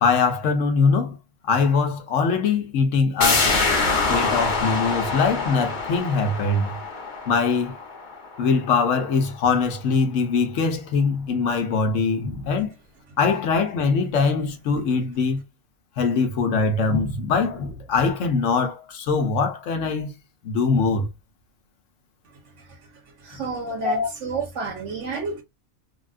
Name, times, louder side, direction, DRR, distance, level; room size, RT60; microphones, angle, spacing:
voice 1, 0.0-1.2 1.5-3.5 4.1-6.7 7.3-7.7 8.4-12.7 13.2-15.4 16.0-20.1 20.4-21.1 23.8-24.1, left 4 dB, 65° left, 1.0 m, -22 dB
sound 1, 3.2-8.7 9.0-9.1, left 3 dB, 40° left, 1.0 m, -25 dB
voice 2, 23.2-25.4, right 4 dB, 60° right, 1.2 m, -30 dB
3.4 x 2.2 x 2.4 m
omnidirectional pair, 1.4 m